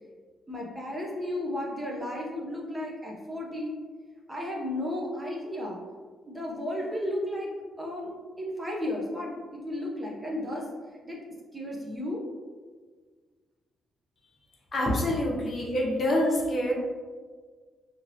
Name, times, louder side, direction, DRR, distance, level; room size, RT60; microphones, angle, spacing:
voice 1, 0.5-3.7 4.3-5.8 6.2-7.5 7.8-10.7 11.0-11.2 11.5-12.2, left 1 dB, 15° right, -3 dB, 0.6 m, -33 dB
voice 2, 14.7-16.7, left 1 dB, 45° left, -2 dB, 0.7 m, -26 dB
2.8 x 2.8 x 2.7 m, 1.5 s
cardioid pair, 90°, 0 cm